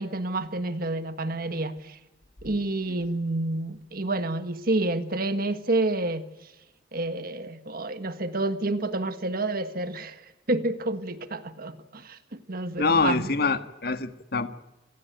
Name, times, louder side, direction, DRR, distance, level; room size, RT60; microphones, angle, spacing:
voice 1, 0.0-2.0 2.4-6.3 6.9-13.3, right 2 dB, 55° right, 9 dB, 1.6 m, -29 dB
voice 2, 12.8-14.5, left 4 dB, 55° left, 9 dB, 1.6 m, -25 dB
27.0 x 19.0 x 9.1 m, 0.99 s
head